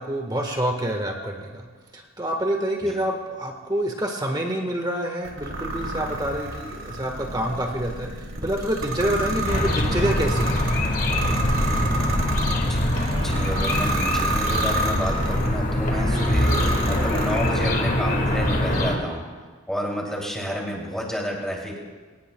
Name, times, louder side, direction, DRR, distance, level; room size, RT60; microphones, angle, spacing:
voice 1, 0.0-1.7 1.9-10.6 11.1-11.4, right 1 dB, 20° right, 2 dB, 1.4 m, -27 dB
sound 1, 5.2-15.5 16.1-17.8, right 1 dB, 80° right, 2.5 m, -30 dB
sound 2, 9.5-19.0, left 1 dB, 40° left, 1.5 m, -24 dB
sound 3, 12.9-15.7 15.9-19.5, right 1 dB, 65° right, 1.5 m, -35 dB
voice 2, 13.2-19.2 19.7-21.8, equal, ahead, -2 dB, 2.8 m, -30 dB
24.0 x 19.0 x 2.3 m, 1.4 s
head